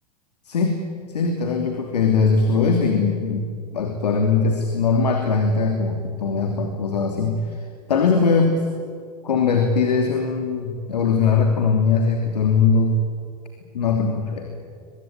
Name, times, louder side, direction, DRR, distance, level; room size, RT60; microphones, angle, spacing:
voice 1, 0.4-0.8 1.1-7.6 7.9-8.6 9.2-13.0 13.7-14.6, left 5 dB, 80° left, 4 dB, 3.1 m, -20 dB
23.5 x 22.5 x 9.1 m, 2.2 s
hypercardioid pair, 90°, 21 cm